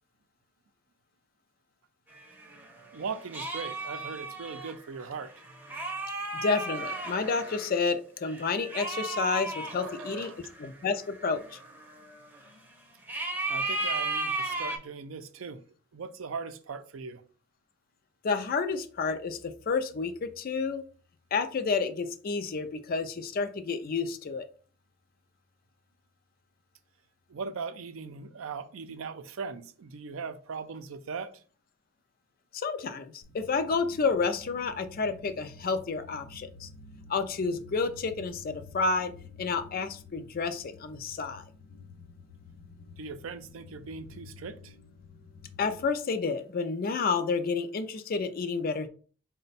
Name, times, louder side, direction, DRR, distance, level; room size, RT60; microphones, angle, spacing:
sound 1, 2.1-7.8 8.2-12.6 13.1-14.8, right 2 dB, 10° right, 0.6 m, -35 dB
voice 1, 2.9-5.3 9.8-10.4 13.5-15.6 15.9-17.2 27.3-31.3 43.0-44.7, right 5 dB, 75° right, 0.4 m, -39 dB
voice 2, 6.3-10.3 10.6-11.6 18.2-20.8 21.3-24.5 32.5-36.7 37.1-39.1 39.4-41.4 45.6-48.9, left 4 dB, 45° left, 0.4 m, -30 dB
sound 2, 33.2-45.9, left 4 dB, 90° left, 0.7 m, -50 dB
4.2 x 2.1 x 4.0 m
head